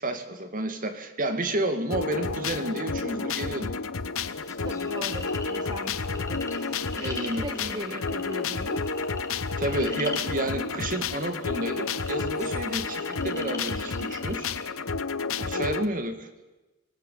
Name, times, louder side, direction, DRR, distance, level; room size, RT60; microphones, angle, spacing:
voice 1, 0.0-3.7 6.9-8.0 9.6-14.5 15.5-16.3, right 1 dB, 40° right, 7 dB, 2.5 m, -31 dB
sound 1, 1.9-15.9, left 4 dB, 65° left, 1.0 m, -31 dB
sound 2, 4.1-14.6, left 3 dB, 15° left, 2.4 m, -43 dB
voice 2, 4.6-9.1 15.3-15.6, right 1 dB, 20° right, 8 dB, 1.0 m, -40 dB
25.0 x 20.0 x 8.6 m, 1.1 s
head